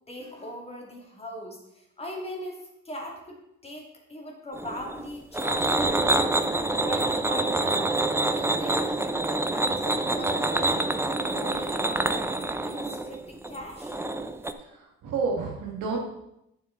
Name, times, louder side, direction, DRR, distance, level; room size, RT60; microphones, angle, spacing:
voice 1, 0.1-3.4 3.6-6.4 6.7-10.9 11.2-13.9, left 1 dB, 20° left, -1 dB, 2.6 m, -40 dB
sound 1, 4.5-14.5, right 2 dB, 10° right, 0.6 m, -26 dB
voice 2, 14.6-16.0, right 4 dB, 90° right, 0 dB, 2.0 m, -30 dB
9.4 x 7.0 x 3.9 m, 0.84 s
cardioid pair, 90°, 30 cm